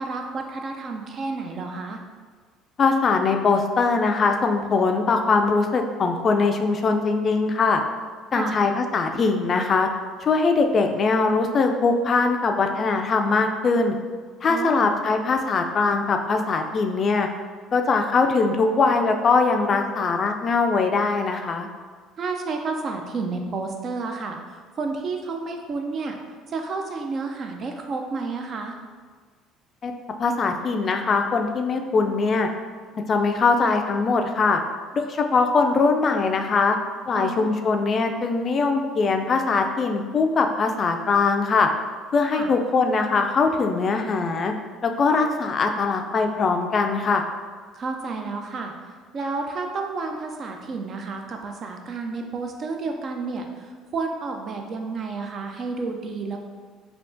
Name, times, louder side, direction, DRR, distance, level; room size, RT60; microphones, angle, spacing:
voice 1, 0.0-2.0 8.3-8.6 14.5-14.9 22.2-26.2 26.5-28.8 37.1-37.6 42.3-42.5 47.7-48.7 49.1-56.4, right 4 dB, 50° right, 4 dB, 0.4 m, -31 dB
voice 2, 2.8-7.8 8.3-9.9 10.2-13.9 14.4-17.3 17.7-21.7 29.8-29.9 30.2-32.5 32.9-34.6 34.9-36.8 37.1-41.7 42.1-44.5 44.8-47.2, left 4 dB, 45° left, 4 dB, 0.3 m, -21 dB
3.4 x 2.4 x 2.6 m, 1.5 s
hypercardioid pair, 70°, 0 cm